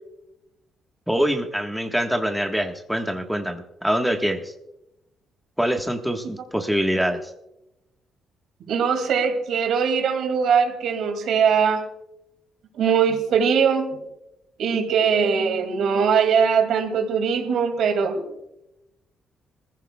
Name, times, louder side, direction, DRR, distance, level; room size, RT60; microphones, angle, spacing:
voice 1, 1.1-4.5 5.6-7.3, equal, ahead, 4 dB, 1.4 m, -24 dB
voice 2, 8.7-11.8 12.8-14.0 14.6-18.2, right 6 dB, 75° right, 5 dB, 2.3 m, -21 dB
22.0 x 15.0 x 2.3 m, 0.89 s
cardioid pair, 90°, 0 cm